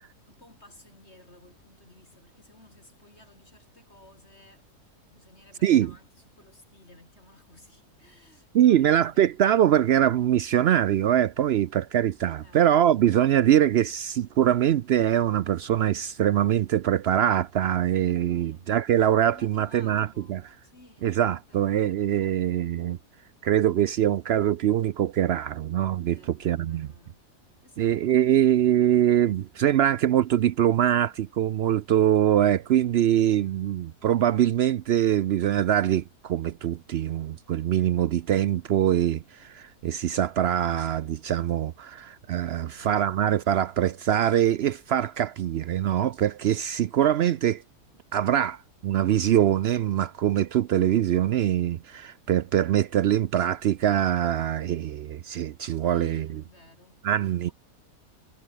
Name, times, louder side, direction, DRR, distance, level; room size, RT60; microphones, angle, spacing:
voice 1, 0.2-4.7 5.1-9.6 12.4-13.0 18.3-21.7 26.1-27.2 27.6-28.7 33.3-33.8 42.5-43.1 48.0-48.1 55.7-57.5, left 1 dB, 40° left, 6.4 m, -56 dB
voice 2, 8.5-20.4 21.0-23.0 23.4-26.2 26.4-26.9 27.8-47.6 48.1-56.3 57.0-57.5, right 11 dB, 90° right, 0.5 m, -23 dB
omnidirectional pair, 1.7 m